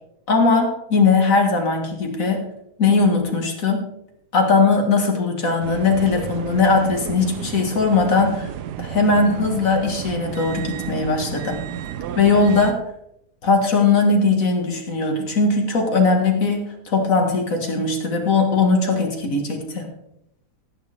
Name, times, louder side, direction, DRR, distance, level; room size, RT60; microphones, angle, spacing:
voice 1, 0.3-2.4 2.8-3.9 4.3-8.5 8.8-11.6 12.2-12.8 13.4-19.9, left 4 dB, 55° left, 2 dB, 2.4 m, -19 dB
sound 1, 5.6-12.7, right 9 dB, 90° right, 1.3 m, -32 dB
17.0 x 9.4 x 3.6 m, 0.81 s
omnidirectional pair, 1.7 m